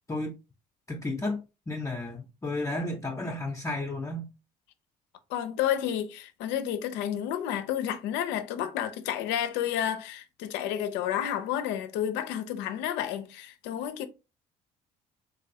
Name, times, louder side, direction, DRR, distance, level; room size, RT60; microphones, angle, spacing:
voice 1, 0.9-1.4 1.7-4.2, left 2 dB, 15° left, 0.6 m, -32 dB
voice 2, 5.3-14.1, left 10 dB, 70° left, 0.5 m, -31 dB
3.0 x 2.6 x 2.7 m
hypercardioid pair, 60°, 19 cm